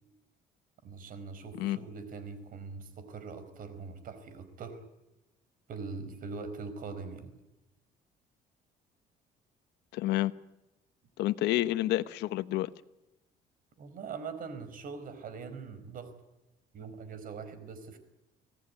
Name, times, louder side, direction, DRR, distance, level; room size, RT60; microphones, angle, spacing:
voice 1, 0.8-4.8 5.7-7.3 13.8-16.1 16.7-18.0, right 4 dB, 55° right, 11 dB, 4.6 m, -42 dB
voice 2, 9.9-10.3 11.2-12.7, left 16 dB, 85° left, 13 dB, 1.1 m, -29 dB
25.0 x 17.5 x 9.5 m, 0.99 s
cardioid pair, 110°, 17 cm